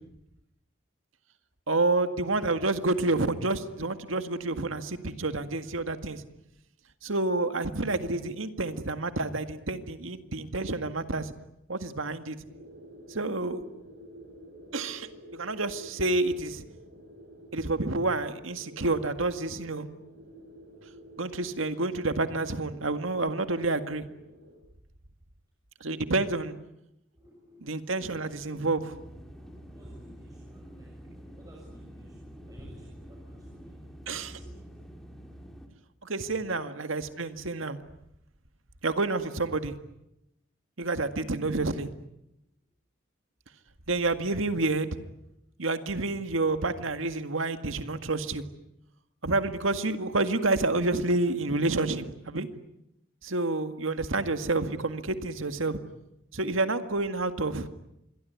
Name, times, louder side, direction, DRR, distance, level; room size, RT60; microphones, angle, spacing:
voice 1, 1.7-6.2 7.0-11.3 11.7-12.4 13.1-13.6 14.7-16.6 17.5-19.9 21.2-24.0 25.8-26.5 27.6-29.0 34.1-34.4 36.0-37.8 38.8-39.7 40.8-41.9 43.9-44.9 45.6-48.4 49.2-52.5 53.2-55.8 56.3-57.7, right 2 dB, 85° right, 9 dB, 1.9 m, -29 dB
sound 1, 12.4-24.6, equal, 50° right, 7.4 m, -50 dB
voice 2, 27.1-28.6 29.2-34.7 35.3-35.4 36.4-36.5, equal, 20° right, -2 dB, 6.7 m, -53 dB
sound 2, 28.9-35.7, equal, ahead, 3.4 m, -47 dB
27.0 x 22.5 x 9.5 m, 0.86 s
head